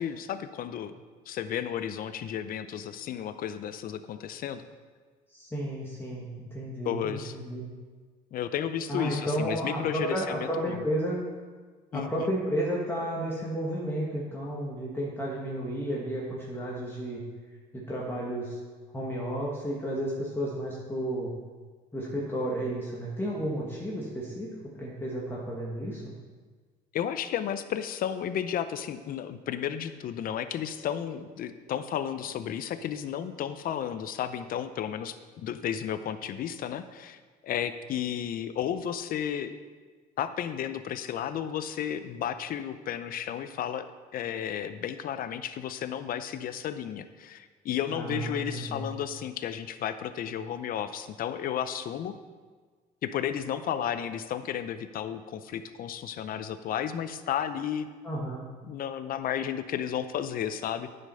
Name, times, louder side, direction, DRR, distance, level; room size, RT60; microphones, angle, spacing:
voice 1, 0.0-4.6 6.8-7.4 8.3-10.8 11.9-12.3 26.9-39.5 40.2-43.8 44.1-52.1 53.0-57.9 58.7-60.9, left 9 dB, 60° left, 11 dB, 0.6 m, -33 dB
voice 2, 5.3-7.6 8.9-11.2 11.9-17.2 17.7-18.6 18.9-21.3 21.9-24.5 24.7-26.1 47.9-48.9 58.0-58.4, right 1 dB, 15° left, -5 dB, 1.5 m, -32 dB
9.8 x 5.2 x 5.5 m, 1.5 s
cardioid pair, 110°, 17 cm